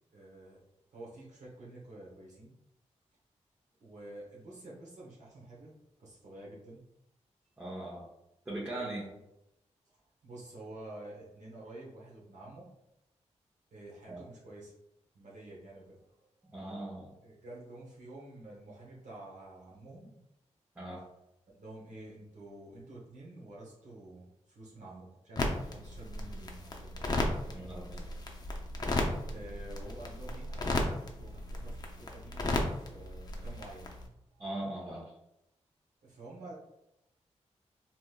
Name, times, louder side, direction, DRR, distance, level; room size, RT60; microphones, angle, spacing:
voice 1, 0.1-0.6 0.9-2.5 3.8-5.7 6.0-6.9 8.8-9.1 10.2-12.7 13.7-14.7 15.1-16.0 17.2-20.2 21.5-26.9 29.3-33.9 34.3-34.5 36.0-36.5, right 2 dB, 85° right, -5 dB, 0.9 m, -49 dB
voice 2, 7.6-8.0 8.5-9.0 14.1-14.2 16.5-17.1 20.8-21.0 27.5-28.1 34.4-35.1, right 1 dB, 15° right, -5 dB, 0.8 m, -39 dB
sound 1, 25.4-34.1, left 1 dB, 35° left, 0.6 m, -35 dB
3.4 x 2.9 x 2.3 m, 0.87 s
cardioid pair, 70°, 12 cm